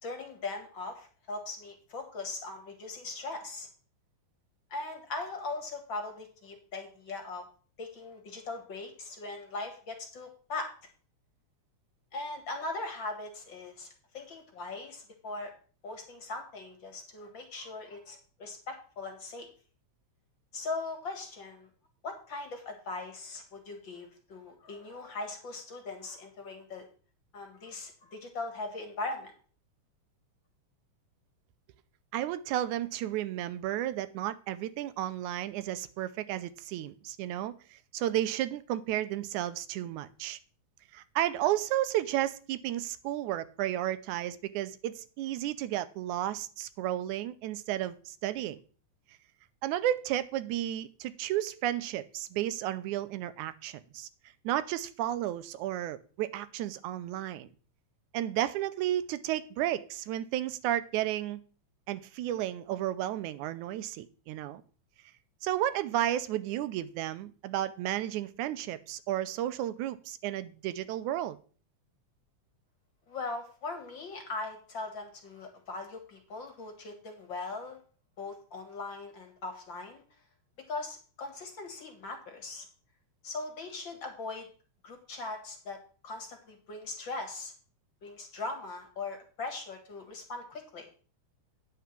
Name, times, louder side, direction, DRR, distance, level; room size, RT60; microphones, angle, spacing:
voice 1, 0.0-3.7 4.7-7.4 7.8-10.7 12.1-15.5 15.8-19.5 20.5-21.7 22.0-26.9 27.3-29.3 73.1-77.8 78.2-80.0 80.7-82.7 83.2-84.5 84.8-85.8 86.0-87.5 88.0-90.9, left 3 dB, 45° left, 1.9 m, -40 dB
voice 2, 32.1-40.4 40.9-48.6 49.6-54.1 54.4-57.5 58.1-61.4 61.9-64.6 65.4-71.4, right 13 dB, 90° right, 2.1 m, -33 dB
9.5 x 4.6 x 7.2 m
omnidirectional pair, 3.4 m